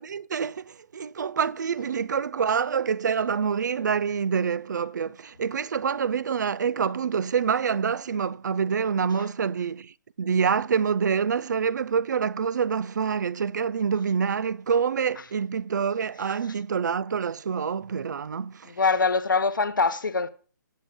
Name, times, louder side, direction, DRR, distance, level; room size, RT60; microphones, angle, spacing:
voice 1, 0.0-18.7, right 6 dB, 65° right, 0.4 m, -26 dB
voice 2, 18.6-20.3, left 4 dB, 80° left, 1.0 m, -23 dB
19.0 x 7.3 x 2.2 m
figure-of-eight pair, 140°, 11 cm